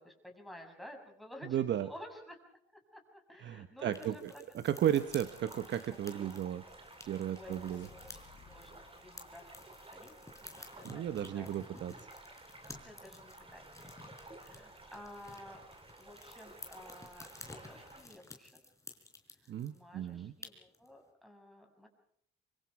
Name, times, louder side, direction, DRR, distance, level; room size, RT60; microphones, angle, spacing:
voice 1, 0.0-2.4 2.9-4.5 4.8-4.9 7.3-9.5 9.9-10.1 10.4-11.5 12.7-13.7 14.3-15.6 16.0-18.6 19.4-21.9, left 1 dB, ahead, 2 dB, 6.8 m, -53 dB
voice 2, 1.4-1.9 3.4-6.6 7.1-7.9 10.8-11.9 19.5-20.3, right 10 dB, 65° right, 11 dB, 1.0 m, -34 dB
sound 1, 3.9-19.8 20.1-20.2 20.4-20.9, left 2 dB, 15° left, 4.2 m, -54 dB
sound 2, 4.8-18.0, right 2 dB, 30° right, 5.1 m, -54 dB
sound 3, 7.2-10.5, left 6 dB, 80° left, 3.8 m, -61 dB
25.0 x 24.0 x 4.8 m, 0.66 s
cardioid pair, 90°, 20 cm